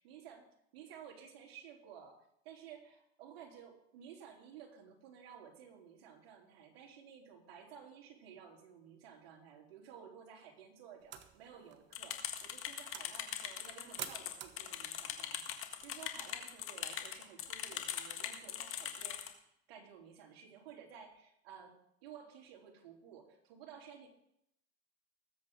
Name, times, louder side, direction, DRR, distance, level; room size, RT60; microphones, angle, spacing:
voice 1, 0.0-0.5 0.7-19.2 19.7-21.8 22.0-24.1, right 8 dB, 70° right, 0 dB, 3.6 m, -54 dB
sound 1, 11.0-16.6, right 9 dB, 35° right, 1.2 m, -52 dB
sound 2, 11.9-19.3, left 10 dB, 40° left, 1.8 m, -41 dB
20.0 x 8.0 x 3.8 m, 0.76 s
supercardioid pair, 120°, 31 cm